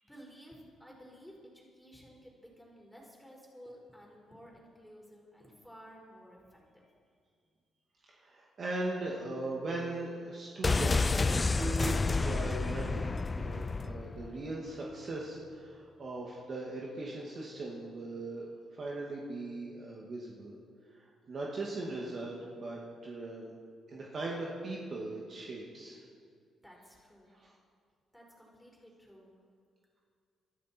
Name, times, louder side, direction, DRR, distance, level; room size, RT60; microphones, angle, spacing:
voice 1, 0.0-6.8 26.6-27.4 28.1-29.3, equal, ahead, -3 dB, 5.0 m, -54 dB
voice 2, 8.1-20.5 20.9-23.6 23.9-26.0 27.3-27.5, right 2 dB, 50° right, -3 dB, 2.2 m, -39 dB
sound 1, 10.6-14.4 14.7-14.8, left 3 dB, 25° left, 0.4 m, -30 dB
20.5 x 13.0 x 4.5 m, 2.2 s
cardioid pair, 90°, 0 cm